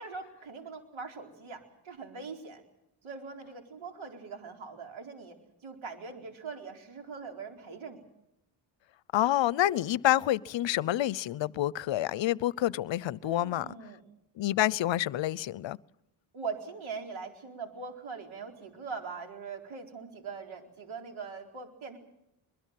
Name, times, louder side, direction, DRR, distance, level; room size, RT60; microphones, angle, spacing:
voice 1, 0.0-2.6 3.0-5.4 5.6-8.0 13.2-14.0 16.3-22.0, right 5 dB, 70° right, 4.4 m, -42 dB
voice 2, 9.1-13.7 14.4-15.8, left 13 dB, 65° left, 0.8 m, -28 dB
23.0 x 21.5 x 7.6 m
cardioid pair, 75°, 49 cm